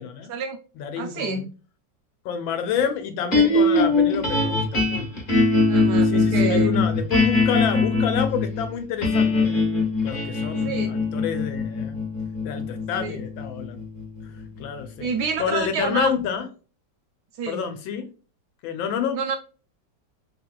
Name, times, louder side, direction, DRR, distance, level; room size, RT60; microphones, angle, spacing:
voice 1, 0.0-0.3 0.8-1.5 2.2-5.1 6.0-9.6 10.0-12.0 12.4-13.8 14.2-15.1 15.4-16.5 17.5-18.1 18.6-19.2, left 8 dB, 90° left, 8 dB, 1.5 m, -29 dB
voice 2, 0.9-1.4 5.7-6.7 10.6-10.9 13.0-13.2 15.0-16.1 17.4-17.6 19.1-19.4, right 5 dB, 70° right, 7 dB, 1.0 m, -28 dB
sound 1, 3.3-15.6, left 3 dB, 35° left, 0.9 m, -22 dB
3.5 x 3.1 x 2.2 m, 0.36 s
omnidirectional pair, 2.1 m